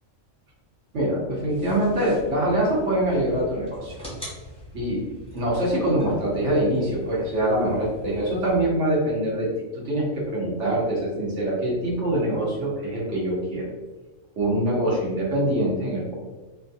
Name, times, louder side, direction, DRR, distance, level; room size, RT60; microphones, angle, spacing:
voice 1, 0.9-3.9 4.7-5.0 5.3-9.5 9.7-13.6 14.4-16.1, right 1 dB, 60° right, -4 dB, 1.4 m, -24 dB
sound 1, 1.5-8.5, equal, 5° left, 0.7 m, -43 dB
4.3 x 2.3 x 2.7 m, 1.2 s
omnidirectional pair, 1.4 m